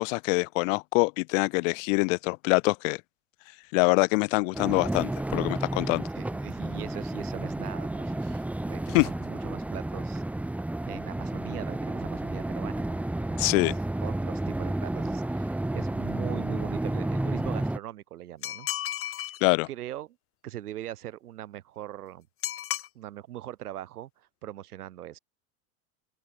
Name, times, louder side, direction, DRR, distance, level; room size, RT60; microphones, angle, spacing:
voice 1, 0.0-3.0 3.7-6.0 8.9-9.1 13.4-13.8 19.4-19.7, left 29 dB, 60° left, 0.7 m, -24 dB
sound 1, 4.5-17.8, right 1 dB, 5° right, 0.8 m, -31 dB
voice 2, 6.2-10.2 10.8-13.4 13.6-13.7 14.0-18.7 19.7-20.2 20.4-22.3 23.0-25.2, right 13 dB, 90° right, 1.8 m, -41 dB
sound 2, 18.4-19.4 22.4-22.9, left 12 dB, 30° left, 1.3 m, -33 dB
open air
hypercardioid pair, 110°, 44 cm